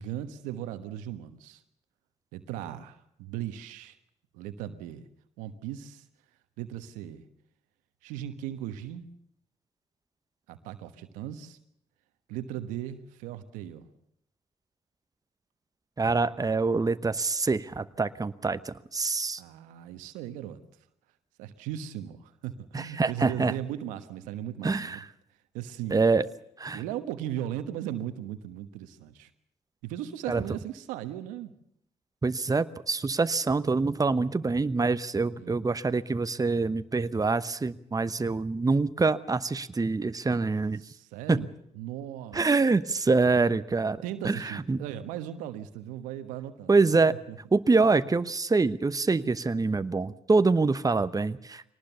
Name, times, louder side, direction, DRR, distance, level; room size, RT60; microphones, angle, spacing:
voice 1, 0.0-1.6 2.3-4.0 4.3-5.1 5.4-6.0 6.6-7.2 8.0-9.1 10.5-11.6 12.3-13.9 19.4-20.6 21.4-25.0 25.5-26.1 26.7-29.3 29.8-31.5 35.4-35.6 40.8-42.5 44.0-46.8 47.7-47.9, right 11 dB, 90° right, 10 dB, 1.2 m, -37 dB
voice 2, 16.0-19.4 22.7-23.5 24.6-25.0 25.9-26.3 26.6-26.8 30.3-30.4 32.2-40.8 41.3-41.4 42.3-44.8 46.7-47.1 47.5-51.6, right 3 dB, 30° right, 13 dB, 1.0 m, -25 dB
23.0 x 19.0 x 6.8 m, 0.74 s
hypercardioid pair, 45°, 13 cm